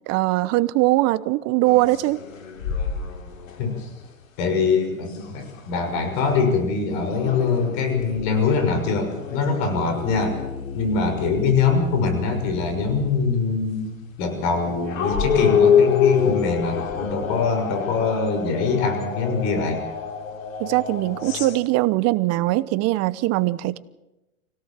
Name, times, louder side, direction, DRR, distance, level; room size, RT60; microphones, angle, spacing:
voice 1, 0.0-2.2 20.6-23.8, right 18 dB, 40° right, 18 dB, 1.0 m, -21 dB
sound 1, 1.7-4.0 5.1-6.1 6.9-13.3 14.3-21.6, left 7 dB, 75° left, 3.5 m, -27 dB
voice 2, 4.4-10.4 10.7-13.9 14.2-19.8, left 4 dB, 50° left, 6 dB, 6.3 m, -23 dB
25.0 x 17.5 x 7.5 m, 0.99 s
hypercardioid pair, 105°, 40 cm